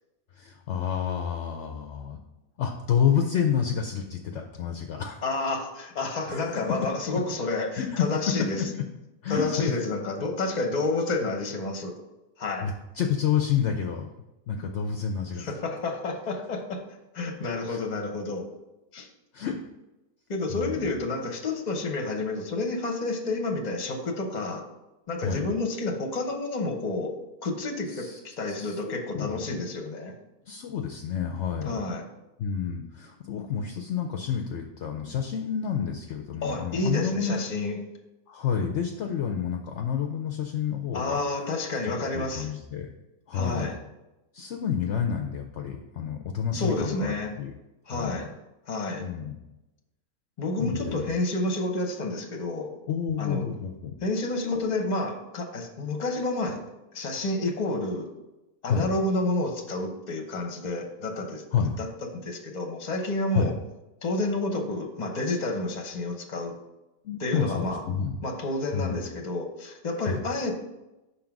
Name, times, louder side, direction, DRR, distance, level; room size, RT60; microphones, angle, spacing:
voice 1, 0.3-2.2 2.6-5.2 6.3-6.5 7.1-7.2 7.7-8.1 8.6-8.8 9.2-9.6 12.6-14.1 14.5-15.5 17.7-17.8 19.3-19.6 20.5-20.9 25.2-25.4 27.9-28.2 28.6-29.7 30.4-31.8 32.4-37.3 38.3-41.2 41.8-42.9 43.3-43.7 44.3-47.5 47.8-48.1 49.0-49.4 50.6-51.0 52.9-53.9 58.7-58.9 61.5-61.7 63.3-63.5 67.0-68.2 68.7-69.1 70.0-70.2, left 8 dB, 65° left, 4 dB, 0.8 m, -29 dB
voice 2, 5.2-8.6 9.3-11.9 12.4-12.7 15.4-16.8 17.1-18.5 18.9-19.1 20.3-24.6 25.1-30.1 31.6-32.1 36.4-37.8 40.9-42.5 43.3-43.8 46.5-47.3 47.9-48.3 48.7-49.1 50.4-52.7 53.2-53.5 54.0-56.6 56.9-58.1 58.6-61.4 61.8-61.9 62.1-63.5 64.0-66.6 67.2-67.8 68.2-70.5, left 2 dB, 35° left, 3 dB, 0.9 m, -30 dB
5.8 x 3.9 x 5.9 m, 0.98 s
omnidirectional pair, 1.5 m